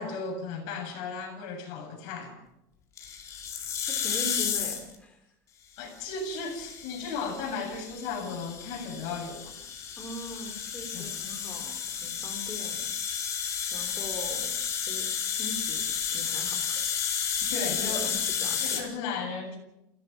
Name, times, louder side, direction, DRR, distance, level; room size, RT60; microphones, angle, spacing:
voice 1, 0.0-2.4 5.8-9.5 10.9-11.1 17.5-18.1 18.6-19.6, left 4 dB, 60° left, 7.6 m, -35 dB
sound 1, 3.0-4.9 6.0-18.8, left 7 dB, 35° left, 4.6 m, -32 dB
voice 2, 4.0-5.2 10.0-12.8 13.7-14.5 14.9-15.8 16.1-16.9 17.6-18.9, left 1 dB, 15° left, 3.7 m, -41 dB
30.0 x 17.0 x 6.0 m
cardioid pair, 150°, 9 cm